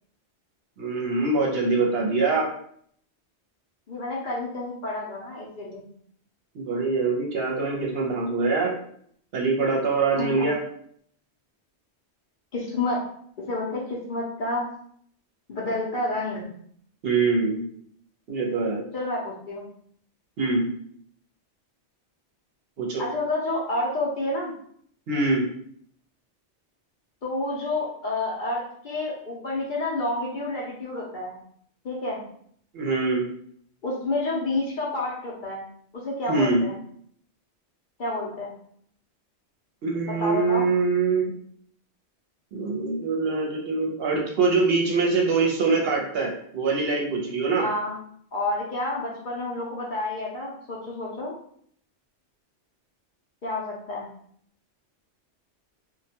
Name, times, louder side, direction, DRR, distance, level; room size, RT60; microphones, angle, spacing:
voice 1, 0.8-2.5 6.5-8.8 9.3-10.6 17.0-17.6 18.3-18.8 20.4-20.7 22.8-23.0 25.1-25.4 32.7-33.2 36.3-36.6 39.8-41.3 42.5-47.7, right 3 dB, 65° right, -1 dB, 0.8 m, -24 dB
voice 2, 3.9-5.9 10.2-10.5 12.5-13.0 13.4-14.7 15.5-16.5 18.9-19.6 23.0-24.5 27.2-31.4 31.8-32.2 33.8-35.6 35.9-36.8 38.0-38.5 40.1-40.7 47.6-48.0 48.3-51.3 53.4-54.1, left 2 dB, 55° left, -4 dB, 0.6 m, -29 dB
2.2 x 2.2 x 2.8 m, 0.64 s
omnidirectional pair, 1.2 m